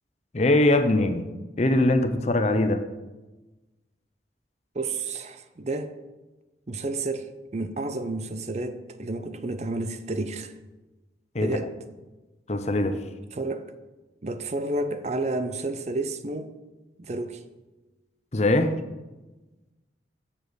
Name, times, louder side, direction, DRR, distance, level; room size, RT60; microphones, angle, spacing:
voice 1, 0.3-1.3 1.6-2.8 11.3-11.5 12.5-13.0 18.3-18.7, left 1 dB, 40° left, 8 dB, 0.7 m, -21 dB
voice 2, 4.7-5.9 6.7-10.5 11.4-11.7 13.3-13.7 14.2-16.5 17.0-17.4, right 2 dB, 40° right, 10 dB, 0.5 m, -31 dB
7.3 x 6.8 x 6.3 m, 1.1 s
head